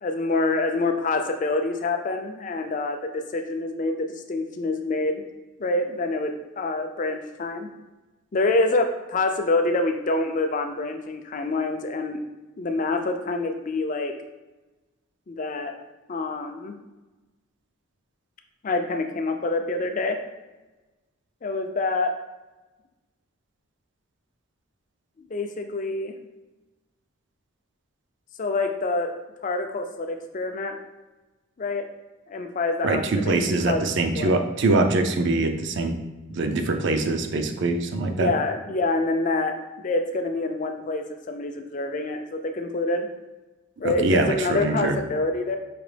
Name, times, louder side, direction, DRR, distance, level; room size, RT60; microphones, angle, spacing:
voice 1, 0.0-5.2 5.6-7.7 8.3-12.2 12.6-14.2 15.3-15.7 16.1-16.8 18.6-20.2 21.4-22.2 25.3-26.1 28.4-29.1 29.4-30.8 31.6-31.9 32.3-34.3 38.0-39.6 39.8-43.1 43.8-45.6, left 2 dB, 40° left, 5 dB, 0.4 m, -26 dB
voice 2, 32.8-35.9 36.3-38.3 43.8-45.0, right 2 dB, 60° right, 6 dB, 0.4 m, -23 dB
5.0 x 2.9 x 3.3 m, 1.1 s
head